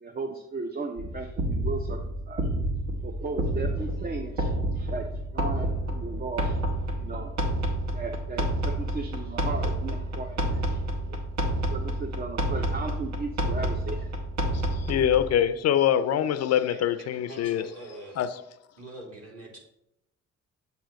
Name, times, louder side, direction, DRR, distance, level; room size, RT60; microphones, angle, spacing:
voice 1, 0.0-2.0 2.3-2.5 3.0-6.6 7.0-7.3 7.9-11.2 11.7-14.1, right 3 dB, 30° right, 0.5 m, -36 dB
sound 1, 1.0-15.3, right 1 dB, 70° right, 1.1 m, -29 dB
voice 2, 14.7-17.6 18.2-18.3, left 10 dB, 60° left, 0.4 m, -24 dB
voice 3, 17.1-18.2 18.8-19.6, right 1 dB, 50° right, 2.3 m, -43 dB
7.5 x 2.8 x 5.0 m
cardioid pair, 90°, 30 cm